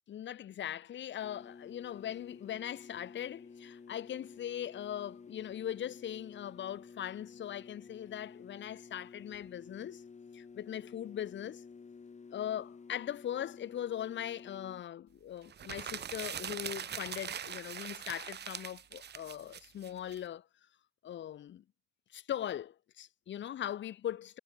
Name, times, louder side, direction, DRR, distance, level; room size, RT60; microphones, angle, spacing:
voice 1, 0.1-10.0 10.3-11.6 12.3-20.5 21.0-21.6 22.1-24.4, left 10 dB, 70° left, 4.7 m, -40 dB
sound 1, 1.2-14.8, left 5 dB, 35° left, 7.8 m, -52 dB
sound 2, 15.5-20.2, right 8 dB, 55° right, 4.1 m, -42 dB
cardioid pair, 90°, 20 cm